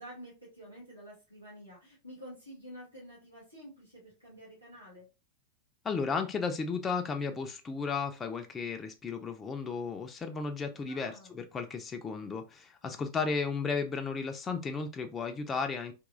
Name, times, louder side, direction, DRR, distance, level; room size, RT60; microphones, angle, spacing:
voice 1, 0.0-5.1 10.9-11.4 12.8-13.0, equal, 85° right, -6 dB, 1.7 m, -49 dB
voice 2, 5.8-15.9, left 5 dB, 20° left, 5 dB, 0.4 m, -34 dB
3.4 x 2.9 x 2.4 m, 0.29 s
figure-of-eight pair, 90°, 0 cm